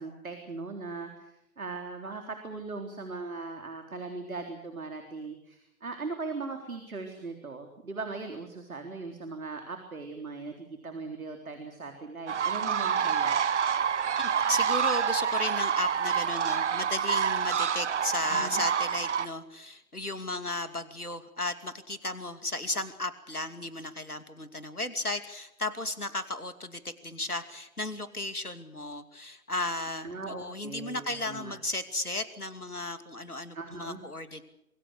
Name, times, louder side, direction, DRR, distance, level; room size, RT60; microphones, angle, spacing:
voice 1, 0.0-13.4 18.3-18.5 30.0-31.5 33.5-34.0, right 3 dB, 70° right, 5 dB, 3.8 m, -39 dB
sound 1, 12.3-19.3, right 7 dB, 55° right, 1.0 m, -27 dB
voice 2, 14.2-34.4, left 2 dB, 85° left, 11 dB, 2.7 m, -35 dB
27.0 x 22.0 x 6.5 m, 0.85 s
figure-of-eight pair, 130°, 44 cm